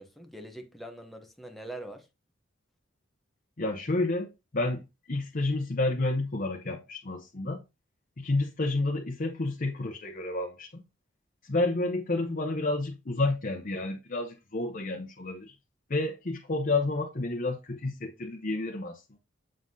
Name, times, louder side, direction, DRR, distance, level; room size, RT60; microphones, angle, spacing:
voice 1, 0.0-2.1, right 1 dB, ahead, 0.8 m, -43 dB
voice 2, 3.6-7.6 8.2-10.7 11.4-15.5 15.9-19.2, left 2 dB, 45° left, 0.9 m, -30 dB
7.7 x 5.7 x 2.7 m
head